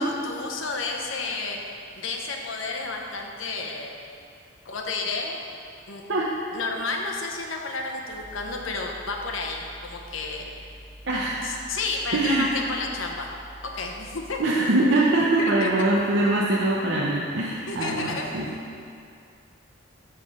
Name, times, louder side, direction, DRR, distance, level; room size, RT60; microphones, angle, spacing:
voice 1, 0.0-1.6 2.0-4.0 4.6-5.4 5.9-6.1 6.5-10.5 11.4-13.3 13.6-14.4 15.4-15.7 17.7-18.3, left 3 dB, 85° left, 1 dB, 0.9 m, -31 dB
sound 1, 8.1-14.4, equal, 5° right, 0.7 m, -46 dB
voice 2, 11.1-11.5 12.1-12.5 14.4-18.5, right 2 dB, 65° right, -5 dB, 0.8 m, -23 dB
9.9 x 3.7 x 6.5 m, 2.4 s
head